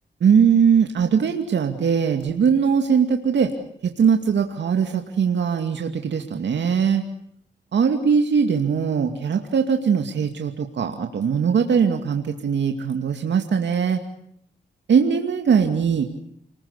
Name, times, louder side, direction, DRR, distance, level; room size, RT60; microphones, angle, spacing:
voice 1, 0.2-3.5 3.8-7.0 7.7-14.0 14.9-16.0, right 6 dB, 75° right, 4 dB, 2.4 m, -20 dB
29.0 x 21.0 x 8.3 m, 0.70 s
cardioid pair, 65°, 18 cm